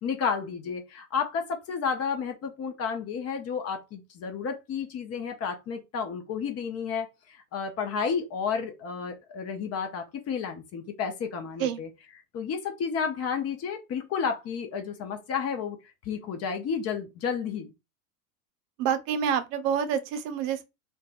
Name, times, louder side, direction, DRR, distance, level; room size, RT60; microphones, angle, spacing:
voice 1, 0.0-11.9 12.3-15.8 16.1-17.7, left 6 dB, 35° left, 0.6 m, -31 dB
voice 2, 18.8-20.6, right 8 dB, 60° right, 0.6 m, -27 dB
2.6 x 2.3 x 2.3 m
hypercardioid pair, 90°, 45 cm